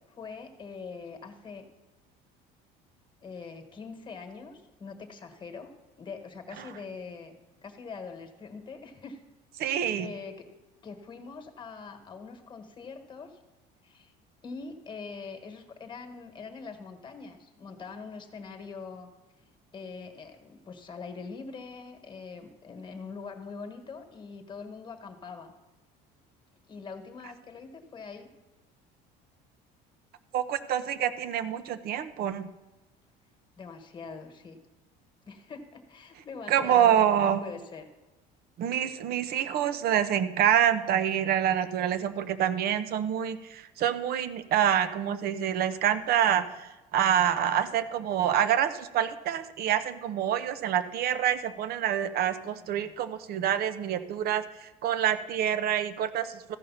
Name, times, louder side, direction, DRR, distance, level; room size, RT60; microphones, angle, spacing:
voice 1, 0.1-1.7 3.2-5.7 6.0-9.2 9.6-10.5 10.8-13.4 13.8-14.1 14.4-19.1 19.7-25.5 26.7-28.3 33.6-34.6 35.3-37.9 52.4-53.0, left 5 dB, 25° left, 5 dB, 1.4 m, -43 dB
voice 2, 9.6-10.1 30.3-32.5 36.5-37.5 38.6-56.6, right 9 dB, 55° right, 13 dB, 0.7 m, -27 dB
14.5 x 5.4 x 5.7 m, 1.1 s
cardioid pair, 120°, 19 cm